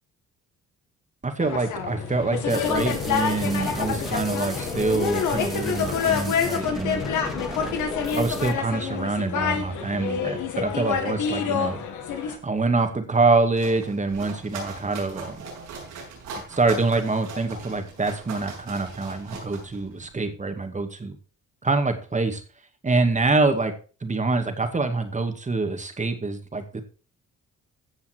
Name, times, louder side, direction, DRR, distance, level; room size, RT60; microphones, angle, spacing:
voice 1, 1.2-7.8 8.1-11.8 12.1-15.4 16.5-21.2 21.6-22.4 22.8-23.7 24.0-26.8, right 3 dB, 25° right, 7 dB, 2.2 m, -25 dB
sound 1, 1.4-12.4, left 7 dB, 80° left, 2.4 m, -27 dB
sound 2, 2.5-8.5, equal, ahead, 2.6 m, -36 dB
sound 3, 13.2-20.2, right 3 dB, 85° right, 6.7 m, -40 dB
16.0 x 5.7 x 4.6 m, 0.37 s
cardioid pair, 90°, 30 cm